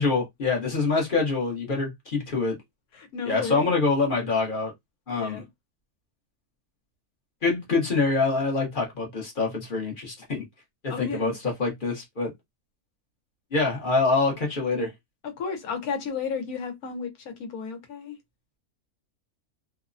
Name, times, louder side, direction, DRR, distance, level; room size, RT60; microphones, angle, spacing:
voice 1, 0.0-2.6 3.2-4.7 5.1-5.4 7.4-10.4 10.8-12.3 13.5-14.9, left 3 dB, 40° left, 0.9 m, -25 dB
voice 2, 2.9-3.7 5.1-5.5 10.9-11.4 15.2-18.2, left 5 dB, 75° left, 1.3 m, -33 dB
3.0 x 2.0 x 2.4 m
omnidirectional pair, 1.6 m